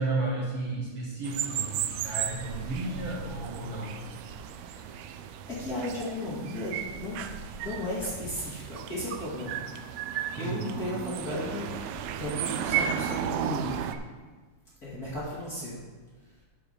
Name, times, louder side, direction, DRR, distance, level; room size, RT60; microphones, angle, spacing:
voice 1, 0.0-4.0 10.4-10.7, right 2 dB, 55° right, -5 dB, 1.9 m, -33 dB
sound 1, 1.2-13.9, right 9 dB, 90° right, 1.5 m, -34 dB
voice 2, 4.5-5.0 5.5-7.2 7.6-9.6 10.3-13.8 14.8-15.8, left 1 dB, 30° left, -7 dB, 2.1 m, -35 dB
9.7 x 4.7 x 6.6 m, 1.3 s
omnidirectional pair, 3.8 m